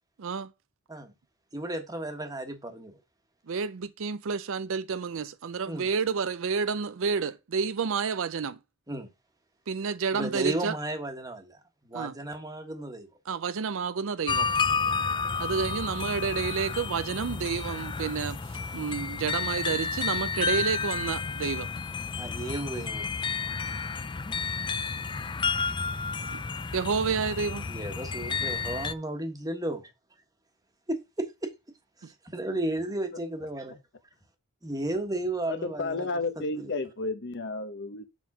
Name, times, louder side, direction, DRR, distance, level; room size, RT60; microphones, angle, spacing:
voice 1, 0.2-0.5 3.5-8.6 9.7-10.8 11.9-12.1 13.3-14.5 15.4-18.4 18.7-21.7 26.7-27.7, right 5 dB, 60° right, 0.5 m, -30 dB
voice 2, 1.5-3.0 5.6-5.9 8.9-9.1 10.1-13.1 14.9-15.0 22.2-23.1 27.7-29.8 30.9-31.5 32.0-33.7 34.6-36.7, right 1 dB, 15° right, 1.3 m, -34 dB
sound 1, 14.3-28.9, left 5 dB, 20° left, 0.4 m, -31 dB
voice 3, 35.5-38.1, left 3 dB, 50° left, 1.0 m, -32 dB
7.3 x 3.6 x 6.0 m
head